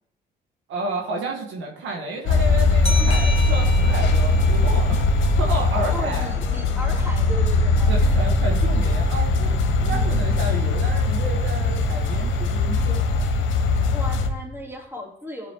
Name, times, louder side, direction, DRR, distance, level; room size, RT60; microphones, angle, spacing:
voice 1, 0.7-5.0 5.4-6.3 7.9-13.0, right 2 dB, 70° right, 1 dB, 1.2 m, -31 dB
sound 1, 2.3-14.3, left 2 dB, 70° left, 0.9 m, -20 dB
sound 2, 2.8-6.2, left 3 dB, 30° left, 1.1 m, -34 dB
voice 2, 2.9-3.3 5.9-8.2 9.8-10.0 13.9-15.5, left 1 dB, 10° right, -2 dB, 2.9 m, -36 dB
13.0 x 5.0 x 2.9 m, 0.72 s
supercardioid pair, 60°, 20 cm